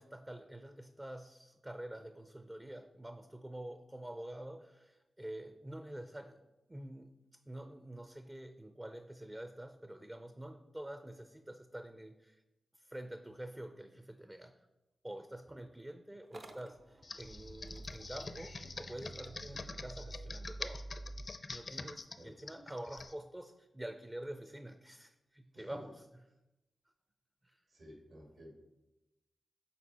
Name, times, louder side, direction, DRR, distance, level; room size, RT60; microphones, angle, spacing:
voice 1, 0.0-6.4 6.7-7.1 7.5-12.4 12.8-14.5 15.0-20.8 21.5-26.1 27.4-27.6, right 1 dB, 20° right, 8 dB, 0.4 m, -47 dB
Motor vehicle (road) / Engine starting, 16.2-21.3, right 2 dB, 55° right, 0.6 m, -49 dB
Computer keyboard, 17.0-23.1, left 3 dB, 50° left, 0.5 m, -45 dB
voice 2, 27.7-28.5, equal, 75° right, -1 dB, 2.1 m, -53 dB
6.8 x 4.4 x 4.2 m, 1.0 s
cardioid pair, 60°, 0 cm